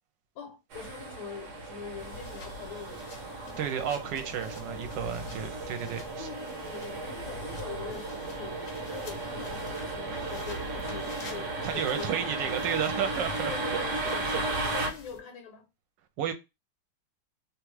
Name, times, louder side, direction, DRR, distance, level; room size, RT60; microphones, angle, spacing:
voice 1, 0.3-3.6 6.2-12.7 13.4-15.7, left 6 dB, 80° left, 1.4 m, -44 dB
sound 1, 0.7-14.9, right 2 dB, 55° right, 0.9 m, -35 dB
sound 2, 2.0-15.2, left 2 dB, 60° left, 0.7 m, -50 dB
voice 2, 3.6-6.3 11.6-14.7 16.2-16.3, right 8 dB, 75° right, 1.2 m, -33 dB
3.2 x 2.4 x 3.0 m
omnidirectional pair, 2.1 m